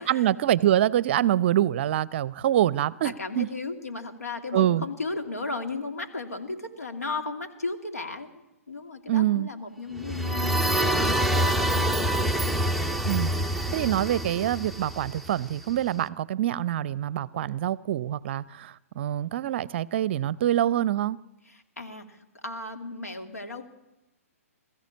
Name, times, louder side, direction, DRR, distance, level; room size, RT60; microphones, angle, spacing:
voice 1, 0.0-3.5 4.5-4.8 9.1-9.5 13.1-21.2, right 12 dB, 50° right, 21 dB, 0.6 m, -25 dB
voice 2, 3.0-8.3 8.7-12.3 21.4-22.2 22.4-23.7, left 3 dB, 85° left, 5 dB, 2.7 m, -35 dB
sound 1, 10.0-15.7, right 1 dB, ahead, 0.7 m, -26 dB
22.0 x 14.5 x 8.6 m, 1.0 s
figure-of-eight pair, 125°, 8 cm